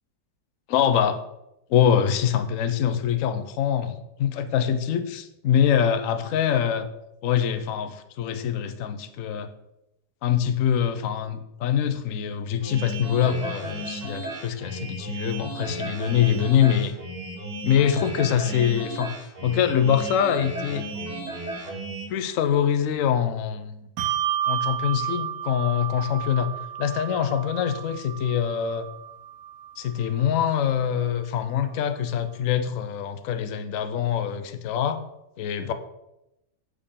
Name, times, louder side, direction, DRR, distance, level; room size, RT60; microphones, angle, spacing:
voice 1, 0.7-1.2 1.7-6.9 7.2-9.5 10.2-16.9 17.6-19.1 19.4-20.9 22.1-23.9 24.5-26.5 26.8-28.9 29.8-35.0 35.4-35.7, left 9 dB, 60° left, 10 dB, 0.9 m, -24 dB
sound 1, 12.6-22.1, right 2 dB, 25° right, 1.3 m, -35 dB
Bell, 24.0-30.8, right 11 dB, 65° right, 1.0 m, -32 dB
8.4 x 6.5 x 3.7 m, 0.89 s
omnidirectional pair, 1.9 m